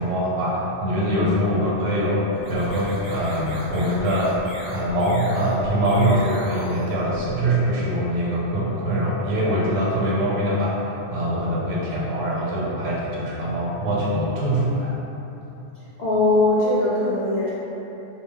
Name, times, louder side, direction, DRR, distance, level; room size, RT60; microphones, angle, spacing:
voice 1, 0.0-2.2 2.5-4.3 4.7-14.9, equal, 85° right, -6 dB, 1.0 m, -23 dB
sound 1, 2.3-7.8, equal, 45° right, 0.6 m, -37 dB
voice 2, 16.0-17.5, left 2 dB, 60° left, -8 dB, 0.4 m, -20 dB
2.3 x 2.0 x 3.3 m, 3.0 s
omnidirectional pair, 1.2 m